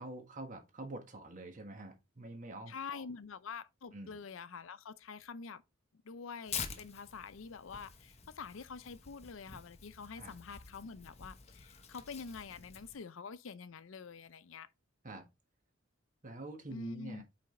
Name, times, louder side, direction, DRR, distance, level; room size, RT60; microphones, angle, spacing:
voice 1, 0.0-3.0 3.9-4.2 10.2-10.3 15.0-15.3 16.2-17.2, right 2 dB, 40° right, 1.5 m, -46 dB
voice 2, 2.7-5.6 6.0-14.7 16.7-17.2, left 5 dB, 75° left, 0.5 m, -46 dB
Tearing, 6.5-13.0, left 6 dB, 30° left, 1.0 m, -47 dB
5.4 x 5.0 x 3.8 m
head